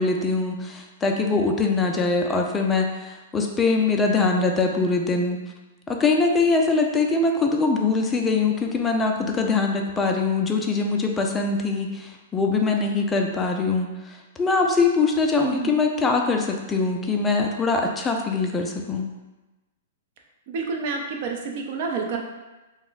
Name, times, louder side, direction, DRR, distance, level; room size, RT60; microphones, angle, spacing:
voice 1, 0.0-5.4 5.9-19.1, left 3 dB, 15° left, 2 dB, 0.3 m, -23 dB
voice 2, 15.4-15.7 20.5-22.2, right 4 dB, 50° right, 2 dB, 0.5 m, -29 dB
2.3 x 2.1 x 3.9 m, 1.1 s
hypercardioid pair, 140°, 0 cm